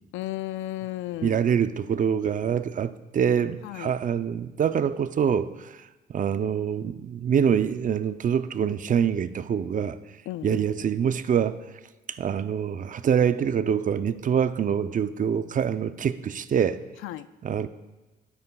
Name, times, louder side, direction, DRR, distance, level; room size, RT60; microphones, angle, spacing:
voice 1, 0.1-1.4 3.6-3.9 10.3-10.6 17.0-17.3, left 15 dB, 85° left, 15 dB, 0.4 m, -34 dB
voice 2, 1.2-5.8 6.1-10.0 10.4-11.6 12.1-16.8 17.4-17.7, right 8 dB, 40° right, 13 dB, 0.5 m, -25 dB
12.5 x 12.0 x 2.3 m, 1.1 s
cardioid pair, 90°, 20 cm